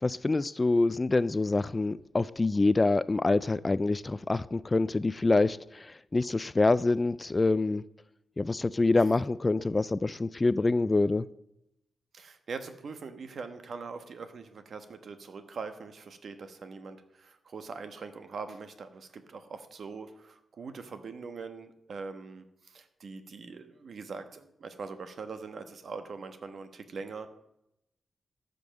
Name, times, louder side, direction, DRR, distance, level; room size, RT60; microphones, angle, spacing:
voice 1, 0.0-7.8 8.4-11.3, left 3 dB, 25° left, 0.3 m, -26 dB
voice 2, 12.1-27.3, right 4 dB, 65° right, 1.2 m, -42 dB
13.5 x 5.4 x 6.6 m
cardioid pair, 95°, 0 cm